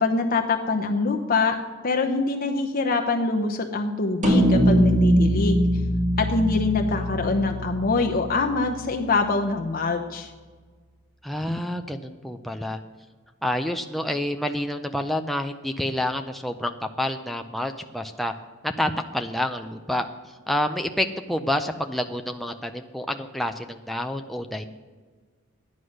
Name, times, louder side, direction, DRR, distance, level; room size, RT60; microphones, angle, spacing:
voice 1, 0.0-1.6 1.8-5.6 6.2-10.3, left 3 dB, 45° left, 3 dB, 0.8 m, -24 dB
sound 1, 4.2-8.7, equal, 35° right, 1.9 m, -22 dB
voice 2, 11.2-12.8 13.4-18.3 18.6-20.1 20.5-24.6, left 1 dB, ahead, 5 dB, 0.5 m, -28 dB
12.5 x 9.8 x 6.4 m, 1.4 s
head